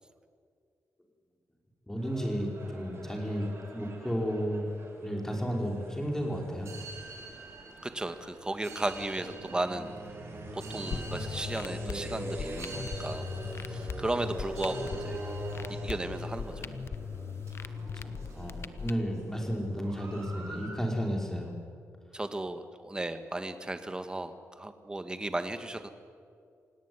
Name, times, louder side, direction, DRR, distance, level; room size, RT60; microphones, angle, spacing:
voice 1, 1.9-4.7 5.0-6.7 18.0-21.5, equal, 10° left, 1 dB, 5.4 m, -33 dB
sound 1, 2.0-17.6 19.7-20.7, right 2 dB, 50° right, 5.8 m, -43 dB
sound 2, 6.6-20.1, right 3 dB, 65° right, 6.8 m, -48 dB
voice 2, 7.8-9.9 10.5-13.3 13.7-15.2 15.7-16.7 22.1-25.9, right 2 dB, 15° right, 9 dB, 1.8 m, -35 dB
sound 3, 10.9-18.9, left 6 dB, 55° left, 1.1 m, -39 dB
27.0 x 18.0 x 9.8 m, 2.2 s
wide cardioid pair, 115°, 5 cm